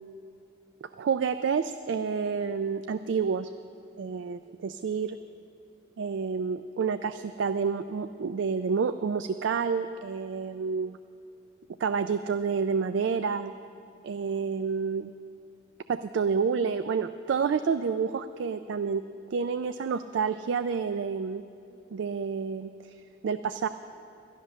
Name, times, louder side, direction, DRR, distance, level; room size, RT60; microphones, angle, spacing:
voice 1, 0.8-3.5 4.0-5.2 6.0-11.0 11.8-13.5 14.0-15.1 15.9-19.0 19.3-21.4 21.9-22.7 23.2-23.7, right 5 dB, 85° right, 10 dB, 0.4 m, -29 dB
12.0 x 11.5 x 6.3 m, 2.7 s
head